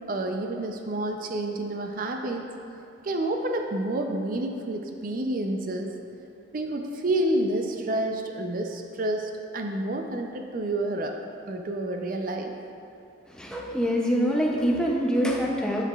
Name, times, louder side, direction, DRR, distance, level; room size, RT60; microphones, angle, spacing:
voice 1, 0.1-2.5 3.0-5.9 6.5-11.2 11.5-12.5, right 1 dB, 45° right, 3 dB, 0.5 m, -29 dB
voice 2, 13.3-15.8, equal, 5° left, -2 dB, 0.5 m, -25 dB
9.9 x 4.7 x 2.3 m, 2.8 s
head